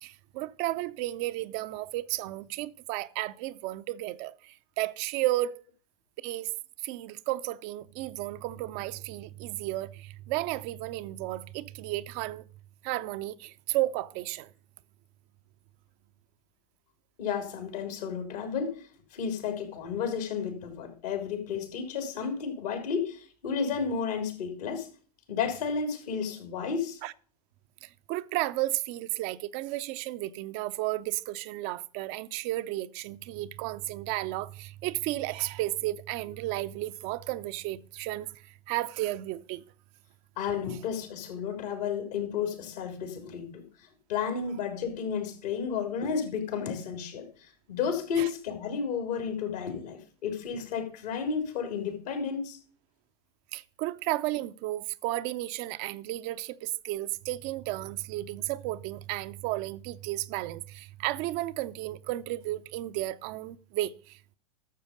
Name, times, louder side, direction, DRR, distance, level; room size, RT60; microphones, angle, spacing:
voice 1, 0.0-5.6 6.2-6.5 6.8-12.4 12.8-14.5 27.0-27.1 27.8-39.6 48.2-48.3 53.5-64.4, right 17 dB, 50° right, 0.6 m, -33 dB
voice 2, 17.2-18.8 19.1-24.9 25.3-27.0 40.4-43.6 44.1-52.6, left 6 dB, 70° left, 3.5 m, -32 dB
12.0 x 7.0 x 5.1 m
hypercardioid pair, 90°, 20 cm